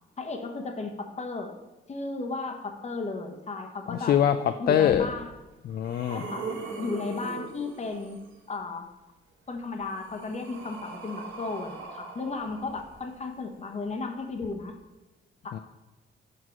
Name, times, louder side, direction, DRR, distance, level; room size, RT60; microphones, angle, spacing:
voice 1, 0.2-1.5 1.9-4.2 4.6-5.3 6.1-6.5 6.8-8.2 8.5-8.9 9.5-14.7 15.4-15.5, left 3 dB, 35° left, 4 dB, 1.1 m, -34 dB
voice 2, 3.9-5.1 5.6-6.2 15.5-15.6, left 9 dB, 50° left, 9 dB, 0.4 m, -24 dB
sound 1, 4.9-5.0 5.5-8.3 9.5-13.4 14.4-14.5, right 4 dB, 80° right, 1.2 m, -41 dB
6.2 x 4.6 x 5.9 m, 1.1 s
cardioid pair, 90°, 20 cm